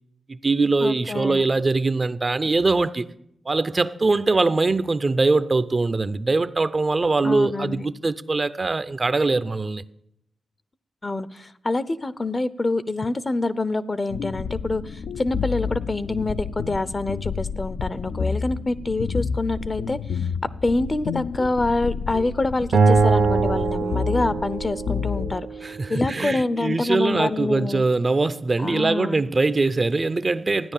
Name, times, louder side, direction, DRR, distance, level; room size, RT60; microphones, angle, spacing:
voice 1, 0.3-3.1 3.5-9.8 25.6-30.7, right 3 dB, 35° right, 0.6 m, -22 dB
voice 2, 0.8-1.5 7.2-7.9 11.0-20.0 20.6-25.5 25.9-27.8 28.6-29.2, left 2 dB, 35° left, 0.6 m, -26 dB
sound 1, 14.1-25.4, left 6 dB, 80° left, 0.6 m, -30 dB
Acoustic guitar, 22.7-26.0, right 4 dB, 70° right, 0.8 m, -22 dB
14.0 x 9.6 x 7.2 m
cardioid pair, 60°, 0 cm